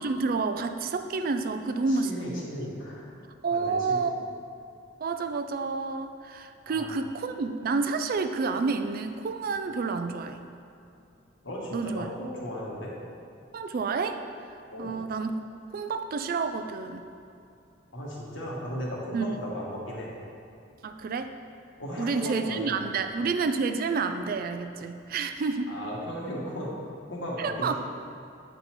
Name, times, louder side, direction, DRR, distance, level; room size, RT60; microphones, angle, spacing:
voice 1, 0.0-2.5 3.4-4.3 5.0-10.5 11.7-12.1 13.5-14.2 14.8-15.3 15.7-17.1 19.1-19.3 20.8-21.3 22.0-25.7 27.4-27.7, right 4 dB, 50° right, 8 dB, 0.4 m, -29 dB
voice 2, 1.9-3.1 3.5-4.1 6.7-7.0 11.4-12.9 14.7-15.0 17.9-20.1 21.8-23.1 25.7-26.7 27.1-27.7, equal, 90° left, -4 dB, 1.4 m, -36 dB
8.0 x 4.0 x 4.4 m, 2.7 s
head